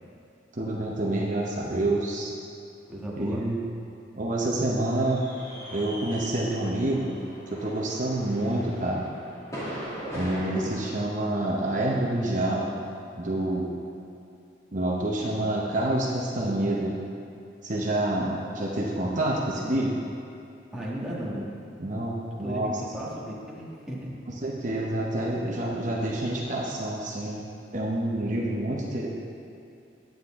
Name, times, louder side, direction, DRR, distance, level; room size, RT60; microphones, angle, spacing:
voice 1, 0.5-2.3 3.2-3.6 4.2-5.2 5.7-7.1 7.5-9.0 10.1-12.7 13.2-13.7 14.7-16.9 17.6-19.9 21.8-22.7 24.4-27.4 27.7-29.1, right 1 dB, 40° right, -4 dB, 0.9 m, -27 dB
voice 2, 2.9-3.4 20.7-21.5 22.4-24.1, right 1 dB, 5° right, -7 dB, 1.6 m, -35 dB
sound 1, 4.8-10.9, equal, 20° left, 2.3 m, -40 dB
9.4 x 9.3 x 3.7 m, 2.6 s
head